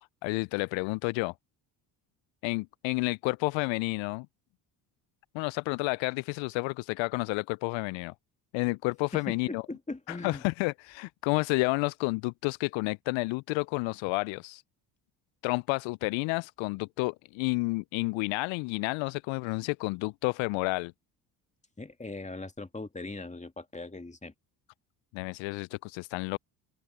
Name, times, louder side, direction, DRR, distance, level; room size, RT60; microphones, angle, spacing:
voice 1, 0.2-1.3 2.4-4.3 5.3-8.1 8.5-9.6 10.1-14.6 15.4-20.9 25.1-26.4, left 27 dB, 65° left, 0.5 m, -30 dB
voice 2, 9.1-10.4 21.8-24.3, left 3 dB, 15° left, 2.2 m, -40 dB
hypercardioid pair, 55°, 50 cm